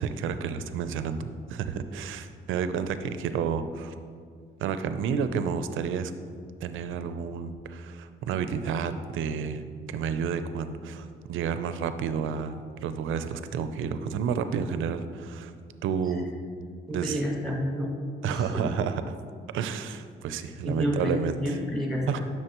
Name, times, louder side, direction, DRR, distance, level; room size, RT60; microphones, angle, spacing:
voice 1, 0.0-3.9 4.6-6.1 6.6-15.5 15.8-16.3 16.9-17.2 18.2-19.0 19.5-21.6 22.1-22.2, right 7 dB, 80° right, 10 dB, 0.5 m, -30 dB
voice 2, 16.9-17.9 18.2-18.7 20.6-22.2, equal, ahead, -2 dB, 1.9 m, -29 dB
11.0 x 6.2 x 3.0 m, 2.1 s
cardioid pair, 90°, 20 cm